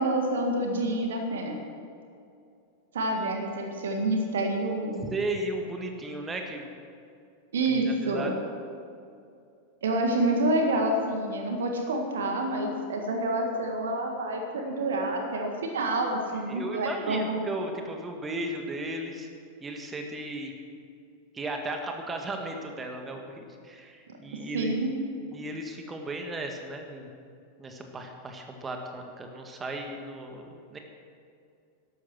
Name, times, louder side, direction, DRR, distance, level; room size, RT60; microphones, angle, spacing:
voice 1, 0.0-1.6 2.9-5.0 7.5-8.3 9.8-17.4 24.5-24.9, right 2 dB, 65° right, 3 dB, 1.8 m, -28 dB
voice 2, 5.1-6.7 7.7-8.4 16.5-19.3 19.6-20.5 21.3-24.7 25.3-27.1 27.6-30.8, right 2 dB, 15° right, 3 dB, 1.8 m, -35 dB
13.5 x 12.0 x 6.3 m, 2.4 s
figure-of-eight pair, 90°, 0 cm